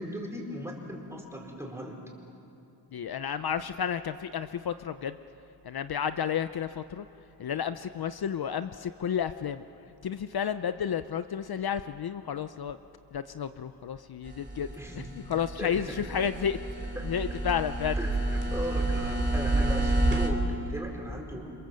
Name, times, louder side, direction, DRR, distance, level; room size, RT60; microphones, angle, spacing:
voice 1, 0.0-2.0 14.8-15.1 15.6-16.0 17.0-17.1 18.0-21.5, equal, 5° right, -1 dB, 4.6 m, -38 dB
voice 2, 2.9-5.2 5.6-7.1 7.4-9.6 10.0-12.8 13.1-14.7 15.3-18.0, left 8 dB, 60° left, 11 dB, 0.7 m, -31 dB
sound 1, 14.3-20.3, right 2 dB, 25° right, 2.8 m, -29 dB
27.5 x 27.5 x 7.7 m, 2.7 s
wide cardioid pair, 150°, 42 cm